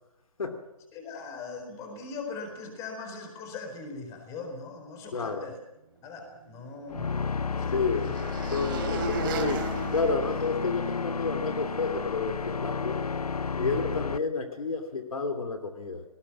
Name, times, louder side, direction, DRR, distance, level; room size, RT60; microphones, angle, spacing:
voice 1, 0.9-5.6 6.0-7.1 7.6-7.7 8.0-8.1 13.6-13.8, left 4 dB, 15° left, 5 dB, 4.2 m, -40 dB
voice 2, 5.1-5.5 7.7-8.1 8.5-13.0 13.5-16.0, left 4 dB, 70° left, 7 dB, 2.9 m, -30 dB
sound 1, 6.4-11.0, right 5 dB, 35° right, 3.2 m, -37 dB
sound 2, 6.9-14.2, left 5 dB, 90° left, 0.8 m, -32 dB
30.0 x 18.5 x 6.1 m, 0.90 s
hypercardioid pair, 155°, 19 cm